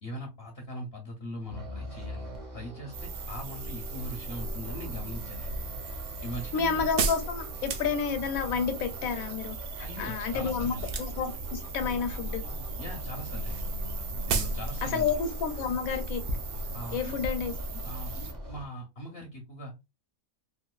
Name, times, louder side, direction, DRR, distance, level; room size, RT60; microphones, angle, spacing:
voice 1, 0.0-2.3 2.5-5.5 6.2-6.8 9.8-10.9 12.8-13.7 14.3-15.1 16.7-17.2 17.8-19.7, left 1 dB, 55° left, 0.8 m, -40 dB
sound 1, 1.5-18.6, right 1 dB, 20° right, 0.7 m, -44 dB
sound 2, 2.9-18.3, right 1 dB, 80° right, 1.1 m, -37 dB
sound 3, 5.9-8.4 10.8-11.4 11.7-12.3 12.6-12.8 13.0-13.1 13.3-13.4 13.8-13.9 14.3-14.6 14.9-15.0, right 5 dB, 65° right, 0.6 m, -31 dB
voice 2, 6.5-9.5 10.0-12.4 14.8-16.2 16.9-17.5, left 6 dB, 80° left, 1.1 m, -30 dB
3.6 x 2.5 x 2.3 m
omnidirectional pair, 1.5 m